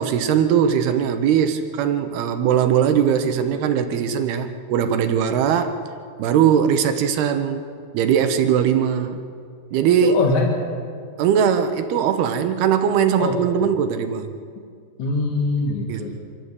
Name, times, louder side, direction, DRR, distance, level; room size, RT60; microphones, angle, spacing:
voice 1, 0.0-5.8 6.2-7.7 7.9-9.2 9.7-10.1 11.2-14.3 15.9-16.1, right 8 dB, 75° right, 8 dB, 2.9 m, -20 dB
voice 2, 10.0-10.6 13.2-13.7 15.0-16.1, left 3 dB, 50° left, 1 dB, 3.0 m, -23 dB
25.0 x 14.5 x 8.3 m, 2.2 s
omnidirectional pair, 4.8 m